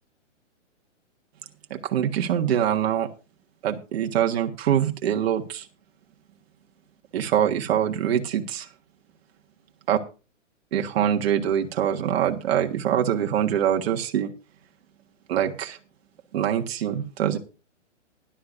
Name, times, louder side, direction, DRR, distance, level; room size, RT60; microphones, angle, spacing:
voice 1, 1.7-3.1 3.6-5.7 7.1-8.7 9.9-10.0 10.7-14.3 15.3-15.8 16.3-17.4, right 9 dB, 55° right, 4 dB, 1.6 m, -24 dB
16.5 x 11.5 x 2.6 m, 0.32 s
hypercardioid pair, 135°, 37 cm